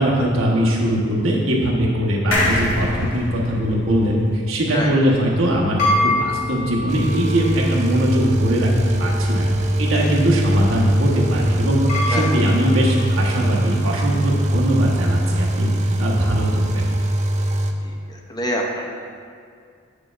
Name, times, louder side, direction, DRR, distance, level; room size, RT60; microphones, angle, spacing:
voice 1, 0.0-8.7 9.0-9.5 9.8-11.8 12.0-15.7 16.0-16.8, equal, 85° right, -3 dB, 1.1 m, -20 dB
sound 1, 2.3-5.8 6.2-6.3 6.5-6.6, left 1 dB, 65° left, 1.3 m, -26 dB
sound 2, 5.2-13.7, left 1 dB, 35° left, 1.2 m, -28 dB
sound 3, 6.9-17.7, right 1 dB, 35° right, 0.3 m, -22 dB
voice 2, 18.1-18.8, equal, 20° left, 0 dB, 0.5 m, -26 dB
8.0 x 6.6 x 2.5 m, 2.3 s
head